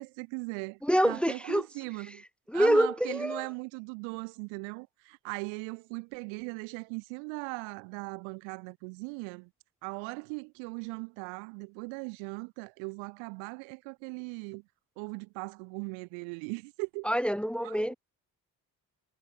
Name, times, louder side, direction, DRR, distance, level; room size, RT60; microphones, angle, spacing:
voice 1, 0.0-0.8 1.0-2.2 2.5-9.5 9.8-14.6 15.0-17.1 17.6-17.9, right 36 dB, 65° right, 0.9 m, -39 dB
voice 2, 0.8-1.7 2.1-2.2 2.5-3.5 17.0-18.0, equal, ahead, 1.2 m, -26 dB
figure-of-eight pair, 45°, 49 cm